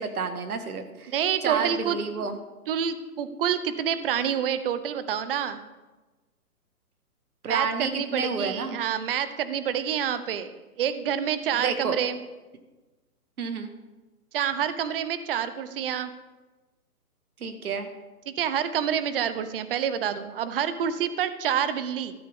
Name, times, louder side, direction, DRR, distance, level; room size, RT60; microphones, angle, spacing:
voice 1, 0.0-1.1 1.4-2.4 7.4-8.8 11.5-12.0 13.4-13.7 17.4-17.9, right 5 dB, 70° right, 7 dB, 1.9 m, -30 dB
voice 2, 1.1-2.0 2.7-5.6 7.5-12.2 14.3-16.1 18.3-22.1, right 9 dB, 40° right, 12 dB, 0.9 m, -28 dB
15.5 x 13.5 x 3.7 m, 1.2 s
hypercardioid pair, 145°, 45 cm